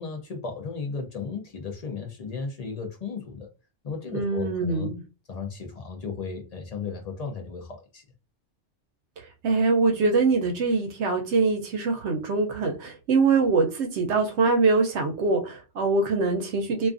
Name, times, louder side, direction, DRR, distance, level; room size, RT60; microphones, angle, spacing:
voice 1, 0.0-3.5 3.8-4.9 5.3-8.0, left 5 dB, 55° left, 0.4 m, -35 dB
voice 2, 4.1-5.0 9.2-16.9, right 4 dB, 70° right, 0.8 m, -23 dB
2.4 x 2.3 x 2.4 m
omnidirectional pair, 1.2 m